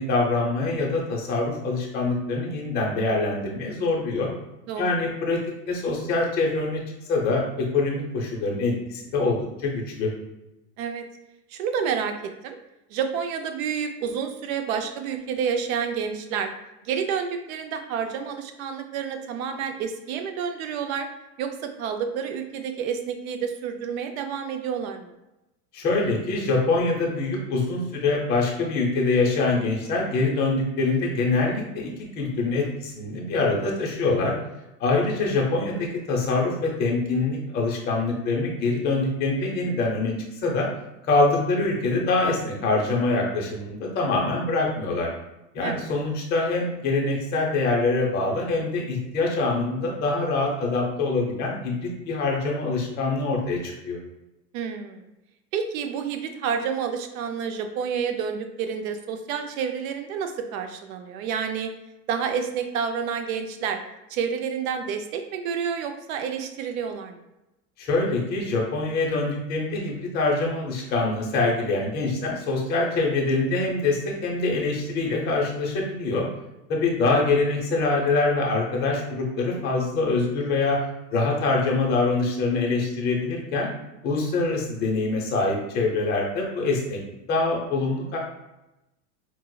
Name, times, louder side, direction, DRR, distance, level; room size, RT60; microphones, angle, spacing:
voice 1, 0.0-4.3 4.8-5.4 5.7-6.8 7.1-10.1 25.7-34.3 34.8-40.1 40.4-40.7 41.1-45.1 45.5-54.0 67.8-76.2 76.7-80.8 81.1-83.7 84.0-87.0 87.3-88.2, left 3 dB, 20° left, -2 dB, 0.5 m, -24 dB
voice 2, 11.5-12.1 12.4-12.6 12.9-16.5 16.8-21.1 21.4-25.1 45.6-45.9 54.5-55.0 55.5-61.7 62.1-63.8 64.1-67.2, right 7 dB, 60° right, 6 dB, 0.5 m, -29 dB
4.4 x 2.0 x 2.2 m, 0.94 s
hypercardioid pair, 115°, 49 cm